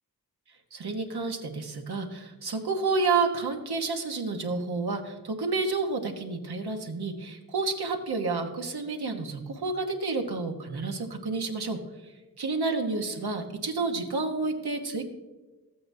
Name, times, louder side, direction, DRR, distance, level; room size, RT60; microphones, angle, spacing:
voice 1, 0.7-11.8 12.4-15.0, right 3 dB, 80° right, 3 dB, 1.2 m, -30 dB
14.0 x 8.4 x 2.7 m, 1.2 s
cardioid pair, 45°, 38 cm